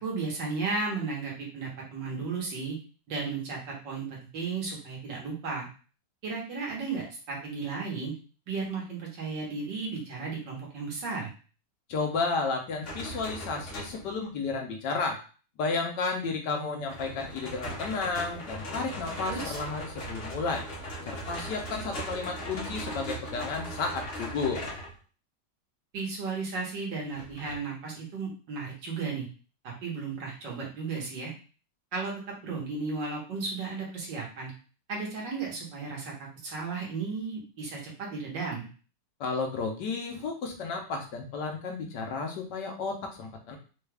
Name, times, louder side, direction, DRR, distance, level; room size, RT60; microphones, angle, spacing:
voice 1, 0.0-2.8 3.1-5.7 6.2-8.1 8.5-11.3 19.3-19.6 25.9-29.3 29.6-31.3 31.9-32.1 32.4-34.5 34.9-38.7, right 4 dB, 90° right, -3 dB, 1.9 m, -34 dB
voice 2, 11.9-15.2 15.6-20.6 21.0-24.6 39.2-43.6, left 4 dB, 75° left, 2 dB, 1.4 m, -32 dB
sound 1, 12.8-14.2 16.9-25.0 27.2-27.6, equal, 50° left, 0.8 m, -38 dB
4.4 x 2.3 x 3.3 m, 0.37 s
omnidirectional pair, 1.9 m